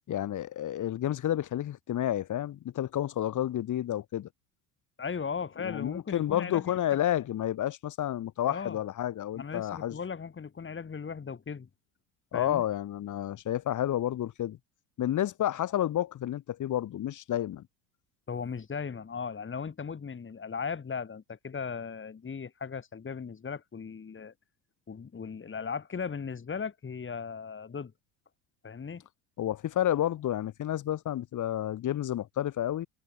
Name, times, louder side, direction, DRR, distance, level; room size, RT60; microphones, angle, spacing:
voice 1, 0.1-4.3 5.6-10.0 12.3-14.6 15.0-17.7 29.4-32.9, left 12 dB, 40° left, 2.0 m, -30 dB
voice 2, 5.0-7.0 8.5-8.8 9.3-11.7 12.3-12.6 18.3-24.3 24.9-27.9 28.6-29.1, left 6 dB, 25° left, 7.0 m, -37 dB
hypercardioid pair, 80°, 44 cm